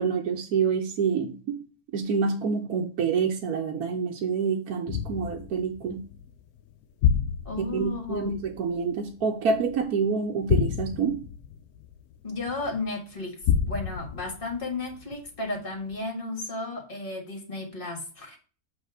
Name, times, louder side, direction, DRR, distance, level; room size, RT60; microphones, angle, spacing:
voice 1, 0.0-1.6 1.9-6.1 7.6-11.3, right 5 dB, 80° right, 1.3 m, -27 dB
sound 1, 4.9-9.9 10.4-12.8 13.4-15.5 15.9-16.0, left 8 dB, 80° left, 1.1 m, -30 dB
voice 2, 7.5-8.3 12.2-13.4 13.7-18.4, left 3 dB, 35° left, 1.9 m, -33 dB
7.9 x 3.4 x 4.8 m
omnidirectional pair, 1.6 m